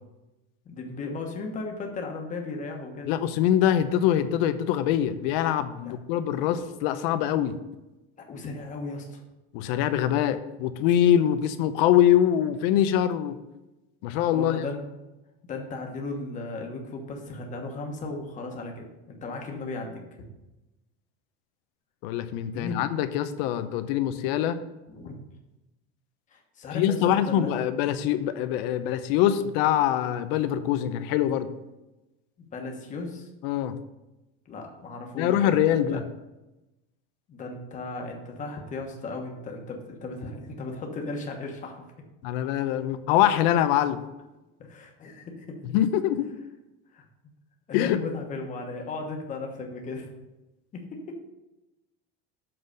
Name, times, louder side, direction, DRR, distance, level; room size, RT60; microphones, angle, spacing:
voice 1, 0.6-3.1 5.8-5.9 8.3-9.2 14.3-14.8 15.5-20.0 22.5-22.8 24.9-25.1 26.3-27.5 32.4-33.3 34.5-36.0 37.3-41.9 44.6-45.6 46.9-47.0 47.7-50.1 50.7-51.2, left 3 dB, 25° left, 2 dB, 1.2 m, -36 dB
voice 2, 3.1-7.6 9.5-13.4 14.0-14.6 22.0-24.6 26.7-31.5 33.4-33.8 35.2-36.0 42.2-44.0 45.7-46.3 47.7-48.0, left 11 dB, 75° left, 11 dB, 0.7 m, -24 dB
7.7 x 3.9 x 6.6 m, 1.0 s
cardioid pair, 170°, 30 cm